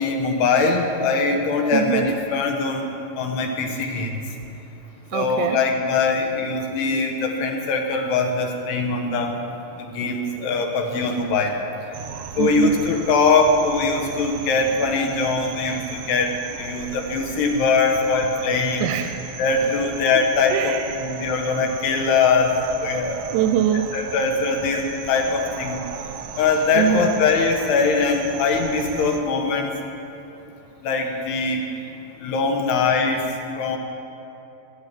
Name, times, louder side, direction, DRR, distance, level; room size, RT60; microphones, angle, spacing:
voice 1, 0.0-2.9 3.2-4.1 5.1-9.3 10.0-11.5 12.4-18.9 19.4-23.2 23.9-25.8 26.4-29.7 30.8-31.6 32.2-33.2 33.6-33.8, left 4 dB, 75° left, 3 dB, 3.3 m, -22 dB
voice 2, 1.7-2.1 5.1-5.6 10.9-11.3 12.4-12.7 18.8-19.1 20.5-20.9 23.3-23.9 26.7-27.1, right 9 dB, 90° right, 7 dB, 2.8 m, -23 dB
sound 1, 11.9-29.2, right 7 dB, 75° right, 2.1 m, -36 dB
18.5 x 8.9 x 7.6 m, 2.9 s
omnidirectional pair, 4.9 m